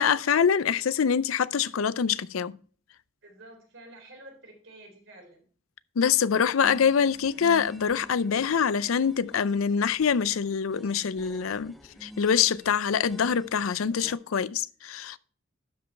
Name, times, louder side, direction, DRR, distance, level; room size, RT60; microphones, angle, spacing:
voice 1, 0.0-2.6 6.0-11.7 12.0-15.2, left 7 dB, 90° left, 0.5 m, -25 dB
voice 2, 3.2-5.4, right 1 dB, 70° right, 3.9 m, -49 dB
sound 1, 6.6-14.2, equal, ahead, 0.6 m, -48 dB
12.0 x 5.3 x 4.5 m
head